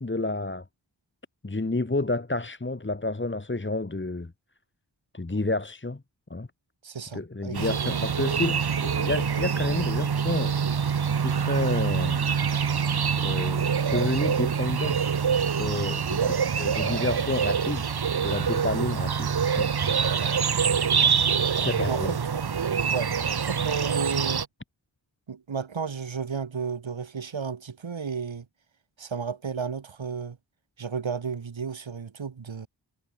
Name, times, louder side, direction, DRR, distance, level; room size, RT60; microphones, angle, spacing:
voice 1, 0.0-0.6 1.4-4.3 5.1-6.0 6.3-6.5 7.1-10.5 11.2-12.2 13.2-15.0 15.6-16.2 16.6-17.9 18.2-19.7 21.5-22.1, left 2 dB, 25° left, 2.0 m, -30 dB
voice 2, 6.8-8.1 16.2-16.4 21.0-21.1 21.9-22.5 22.9-23.1 23.4-24.4 25.3-28.5 29.0-30.4 30.8-32.7, right 6 dB, 85° right, 3.9 m, -33 dB
sound 1, 7.5-24.5, right 6 dB, 55° right, 1.2 m, -25 dB
cardioid pair, 45°, 45 cm